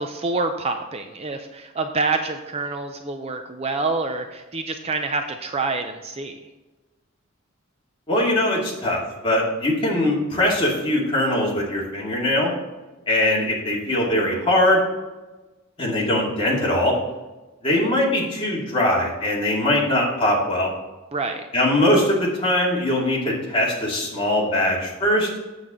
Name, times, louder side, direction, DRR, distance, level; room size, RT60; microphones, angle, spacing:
voice 1, 0.0-6.4 21.1-21.5, right 3 dB, 30° right, 6 dB, 0.5 m, -27 dB
voice 2, 8.1-12.5 13.1-14.8 15.8-17.0 17.6-20.7 21.5-25.3, left 1 dB, 25° left, -4 dB, 2.2 m, -21 dB
7.8 x 7.1 x 3.7 m, 1.2 s
head